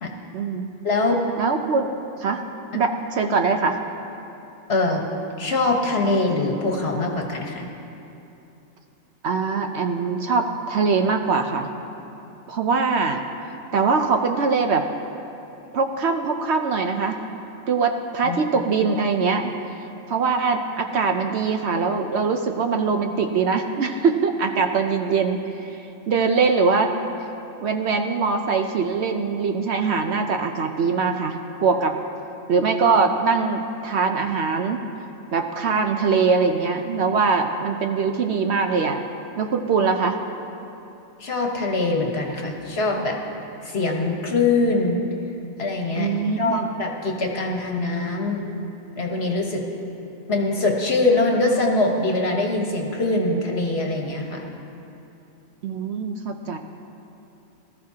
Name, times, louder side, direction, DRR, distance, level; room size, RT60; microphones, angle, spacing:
voice 1, 0.3-0.7 1.4-1.9 2.2-2.4 2.7-3.8 9.2-11.7 12.5-13.2 13.7-14.9 15.7-17.2 17.7-19.5 20.1-26.9 27.6-32.0 32.5-34.8 35.3-39.0 39.4-40.2 46.0-46.7 55.6-56.6, right 4 dB, 60° right, 5 dB, 0.8 m, -22 dB
voice 2, 0.8-1.2 4.7-5.0 5.4-7.7 18.2-18.4 41.2-43.2 43.6-45.0 45.6-48.4 49.0-49.6 50.3-54.4, left 2 dB, 50° left, 1 dB, 1.5 m, -23 dB
19.0 x 13.5 x 2.8 m, 2.9 s
omnidirectional pair, 1.4 m